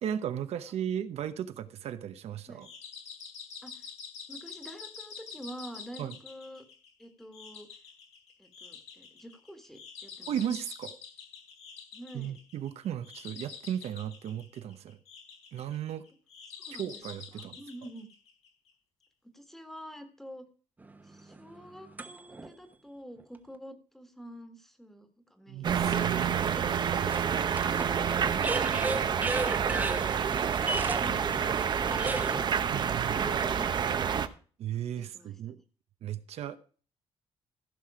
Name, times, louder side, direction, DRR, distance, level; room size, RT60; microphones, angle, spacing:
voice 1, 0.0-2.7 6.0-6.2 10.3-11.0 12.1-15.0 15.5-16.1 16.7-17.6 25.5-26.3 32.7-33.2 34.6-35.6 36.0-36.6, right 10 dB, 70° right, 0.9 m, -35 dB
sound 1, 2.6-18.7, left 6 dB, 80° left, 4.3 m, -47 dB
voice 2, 4.3-6.6 7.0-7.7 8.4-10.3 11.9-12.4 16.7-17.0 17.3-18.1 19.3-20.4 21.1-25.8 27.9-28.7 32.0-32.5 32.9-33.7 35.0-35.6, equal, 5° left, 1.6 m, -47 dB
sound 2, 20.8-22.5 23.2-23.3 27.1-32.4, right 2 dB, 15° right, 1.0 m, -35 dB
sound 3, 25.6-34.3, right 7 dB, 40° right, 0.8 m, -28 dB
15.0 x 6.2 x 4.9 m
cardioid pair, 160°, 11 cm